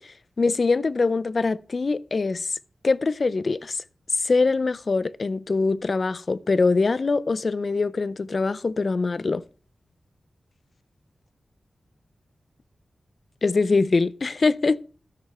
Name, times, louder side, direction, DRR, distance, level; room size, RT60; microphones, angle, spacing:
voice 1, 0.4-2.6 2.8-3.8 4.2-9.4 13.4-14.8, left 3 dB, 45° left, 0.4 m, -23 dB
13.0 x 6.7 x 4.2 m
wide cardioid pair, 130°, 0 cm